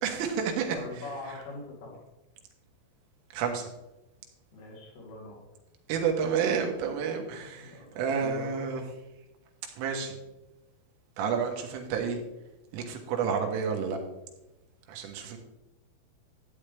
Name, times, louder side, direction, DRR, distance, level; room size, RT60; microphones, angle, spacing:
voice 1, 0.0-1.4 3.3-3.7 5.9-8.8 9.8-10.2 11.2-12.2 12.7-14.0 14.9-15.4, right 6 dB, 80° right, 2 dB, 3.7 m, -30 dB
voice 2, 0.7-2.0 4.5-5.4 7.5-8.7, left 2 dB, 75° left, -3 dB, 5.5 m, -42 dB
13.0 x 8.9 x 3.4 m, 0.98 s
omnidirectional pair, 5.9 m